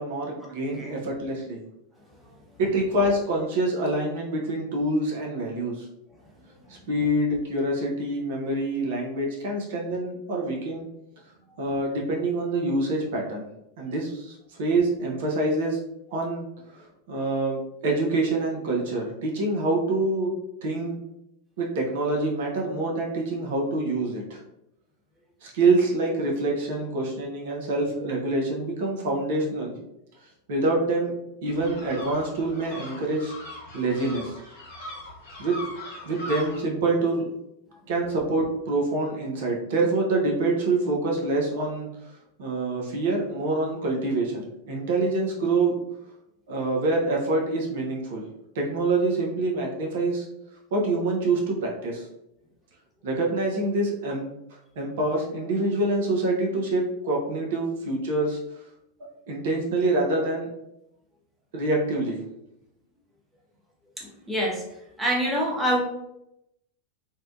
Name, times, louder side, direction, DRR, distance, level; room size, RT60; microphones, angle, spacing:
voice 1, 0.0-1.6 2.6-5.9 6.7-10.9 11.6-13.5 13.8-15.8 16.1-16.5 16.7-20.3 20.6-21.0 21.6-24.4 25.4-29.7 30.5-34.4 35.4-35.6 36.0-37.3 37.9-42.1 42.4-45.7 46.5-48.3 48.5-50.3 50.7-52.1 53.0-54.3 54.8-58.4 59.3-60.5 61.5-62.2, right 2 dB, 55° right, -1 dB, 0.5 m, -26 dB
sound 1, 31.5-36.6, left 2 dB, 55° left, 0.9 m, -40 dB
voice 2, 64.0-64.6 65.0-65.8, equal, 5° right, -3 dB, 0.6 m, -25 dB
2.6 x 2.1 x 2.4 m, 0.84 s
figure-of-eight pair, 90°, 0 cm